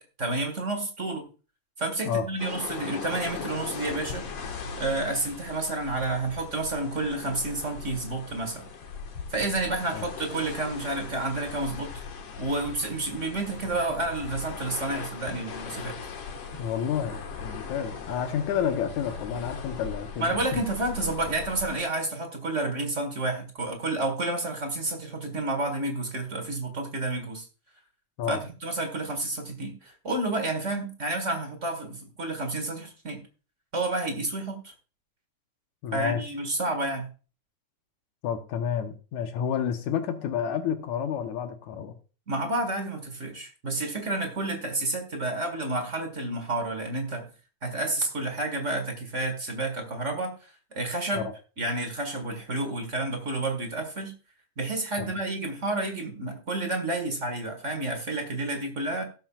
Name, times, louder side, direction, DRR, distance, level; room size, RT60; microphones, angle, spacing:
voice 1, 0.2-1.3 1.8-4.3 4.8-8.7 9.3-11.9 12.4-15.9 20.2-27.5 28.3-33.2 33.7-34.7 35.9-37.1 42.3-47.3 47.6-51.3 51.6-54.1 54.6-59.0, right 2 dB, 35° right, 4 dB, 1.3 m, -30 dB
sound 1, 2.4-21.8, left 5 dB, 55° left, 2.2 m, -39 dB
voice 2, 16.6-20.6 28.2-28.4 35.8-36.2 38.2-42.0 51.1-51.3 55.0-55.1, left 8 dB, 75° left, 6 dB, 2.2 m, -30 dB
18.0 x 7.3 x 2.3 m, 0.34 s
omnidirectional pair, 3.5 m